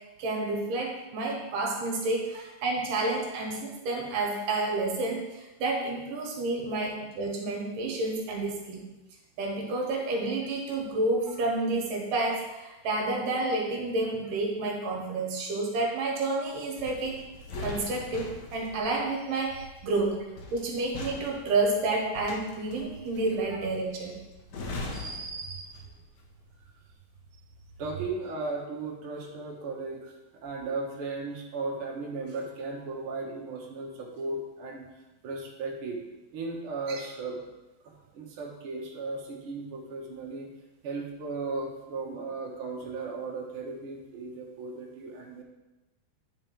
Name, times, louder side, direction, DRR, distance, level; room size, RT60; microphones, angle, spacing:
voice 1, 0.2-8.9 9.4-17.2 17.6-20.2 20.5-24.2 24.9-25.8 36.9-37.0, right 2 dB, 75° right, 0 dB, 2.8 m, -30 dB
sound 1, 16.8-26.1 26.4-26.7, left 2 dB, 65° left, 2.0 m, -42 dB
voice 2, 27.8-30.1 30.4-36.0 36.3-37.4 37.8-40.5 40.8-45.4, right 3 dB, 55° right, -2 dB, 1.6 m, -36 dB
9.4 x 5.1 x 4.5 m, 1.1 s
omnidirectional pair, 4.0 m